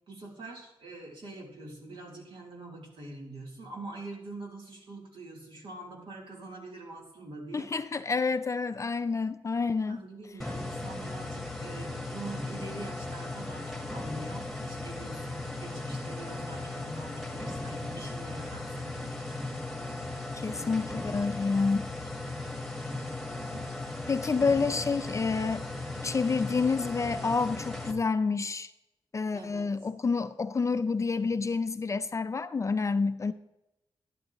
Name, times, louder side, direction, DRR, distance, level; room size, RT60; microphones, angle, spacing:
voice 1, 0.1-7.7 9.8-19.1 20.5-20.8 22.8-23.7 29.3-29.7, right 2 dB, 70° right, 3.5 m, -44 dB
voice 2, 7.5-10.0 20.3-21.9 24.1-25.6 26.0-28.7 29.1-33.3, left 4 dB, 35° left, 0.4 m, -28 dB
sound 1, 10.4-27.9, left 2 dB, ahead, 1.4 m, -37 dB
12.0 x 11.5 x 3.0 m
wide cardioid pair, 120°, 9 cm